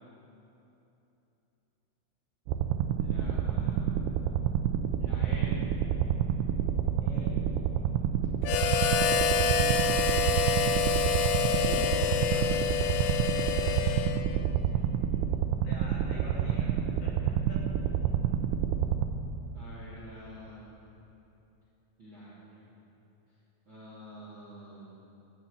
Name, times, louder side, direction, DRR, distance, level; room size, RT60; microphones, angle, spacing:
sound 1, 2.5-19.1, right 9 dB, 90° right, 2.5 m, -28 dB
voice 1, 3.0-4.0 5.0-5.6 11.1-12.8 19.5-20.7 22.0-22.7 23.7-25.0, equal, 35° right, -7 dB, 2.1 m, -46 dB
voice 2, 7.0-7.5 9.2-10.8 15.6-16.7 17.0-17.8, left 1 dB, 50° left, -6 dB, 4.4 m, -45 dB
Harmonica, 8.4-14.5, left 6 dB, 90° left, 2.5 m, -27 dB
14.0 x 8.2 x 9.2 m, 2.9 s
omnidirectional pair, 5.8 m